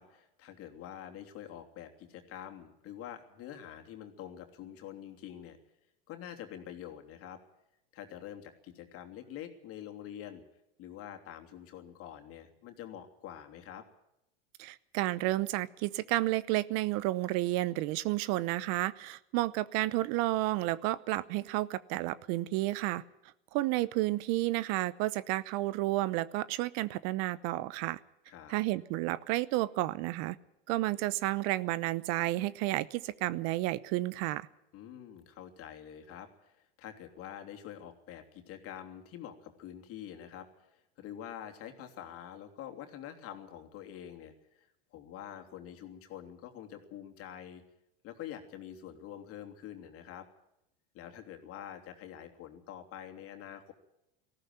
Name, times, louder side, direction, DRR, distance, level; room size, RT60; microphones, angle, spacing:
voice 1, 0.0-5.6 6.1-7.4 7.9-10.4 10.8-13.8 28.3-28.6 34.7-47.6 48.0-50.3 50.9-53.7, left 10 dB, 50° left, 5 dB, 3.1 m, -46 dB
voice 2, 14.6-23.0 23.5-28.0 28.5-30.4 30.7-34.5, right 17 dB, 55° right, 19 dB, 0.8 m, -31 dB
19.0 x 15.0 x 9.5 m, 0.87 s
supercardioid pair, 110°, 30 cm